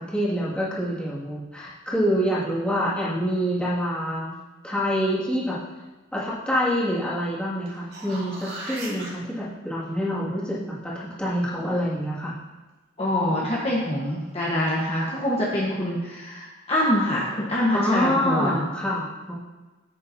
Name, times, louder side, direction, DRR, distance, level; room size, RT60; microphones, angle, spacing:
voice 1, 0.0-4.3 4.6-5.6 6.1-10.6 10.8-12.3 13.2-13.3 17.7-19.3, equal, 5° left, -8 dB, 2.1 m, -26 dB
sound 1, 7.7-9.1 13.9-14.0, right 1 dB, 60° right, 2.3 m, -37 dB
voice 2, 13.0-18.6, left 1 dB, 30° left, -5 dB, 1.2 m, -25 dB
9.5 x 8.4 x 2.8 m, 1.2 s
head